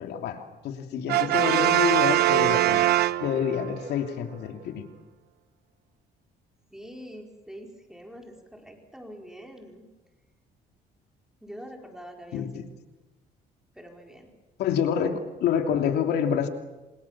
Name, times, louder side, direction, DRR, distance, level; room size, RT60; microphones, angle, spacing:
voice 1, 0.0-2.8 3.2-4.8 12.3-12.6 14.6-16.5, left 7 dB, 75° left, 5 dB, 2.9 m, -27 dB
voice 2, 1.0-1.4 6.7-9.8 11.4-12.6 13.7-14.3, equal, 5° right, 1 dB, 4.6 m, -45 dB
Brass instrument, 1.1-3.7, right 15 dB, 70° right, 0.9 m, -22 dB
27.5 x 26.5 x 7.4 m, 1.1 s
cardioid pair, 110°, 17 cm